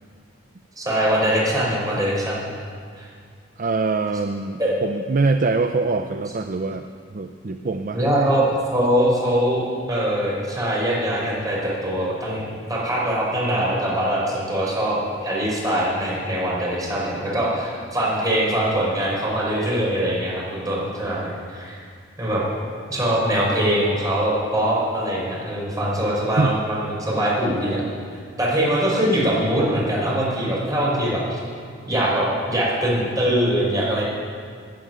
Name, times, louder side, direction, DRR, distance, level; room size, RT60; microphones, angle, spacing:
voice 1, 0.8-2.5 3.0-3.1 4.6-4.7 7.9-12.4 12.7-21.8 22.2-22.4 22.9-27.8 28.4-31.4 31.9-34.0, right 1 dB, 20° right, -5 dB, 5.4 m, -22 dB
voice 2, 3.6-8.0 17.1-17.2 26.4-26.5, right 3 dB, 45° right, 7 dB, 0.5 m, -24 dB
14.0 x 10.0 x 9.3 m, 2.1 s
head